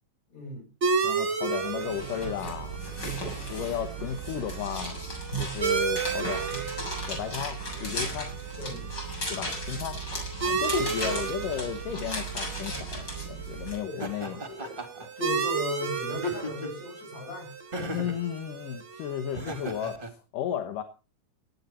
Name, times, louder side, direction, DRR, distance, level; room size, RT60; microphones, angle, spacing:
voice 1, 0.3-0.7 8.6-9.0 10.5-10.7 13.8-14.9 15.2-18.1, left 2 dB, 55° left, 2 dB, 8.8 m, -38 dB
sound 1, 0.8-20.0, right 5 dB, 55° right, 0.8 m, -34 dB
voice 2, 1.0-2.8 3.5-5.0 5.4-6.4 6.8-8.3 9.3-10.0 10.5-14.4 17.8-20.8, left 10 dB, 80° left, 8 dB, 2.8 m, -34 dB
sound 2, 1.7-13.8, right 2 dB, 30° left, 7.9 m, -35 dB
Laughter, 14.0-15.1 16.1-16.8 17.7-18.2 19.3-20.1, right 1 dB, 20° right, 1.9 m, -36 dB
18.0 x 11.5 x 4.3 m, 0.34 s
omnidirectional pair, 3.8 m